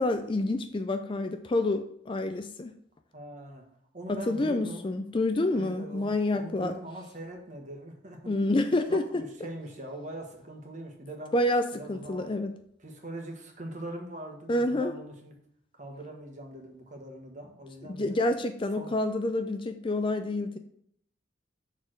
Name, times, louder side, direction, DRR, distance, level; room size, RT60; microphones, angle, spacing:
voice 1, 0.0-2.7 4.1-6.8 8.3-9.2 11.3-12.5 14.5-14.9 17.9-20.6, left 2 dB, 25° left, 8 dB, 0.3 m, -28 dB
voice 2, 3.1-3.7 3.9-4.9 5.5-8.3 8.9-11.3 11.7-12.3 12.8-15.4 15.8-18.2 18.8-18.9, right 1 dB, 35° right, 2 dB, 1.3 m, -42 dB
6.5 x 3.6 x 6.1 m, 0.69 s
head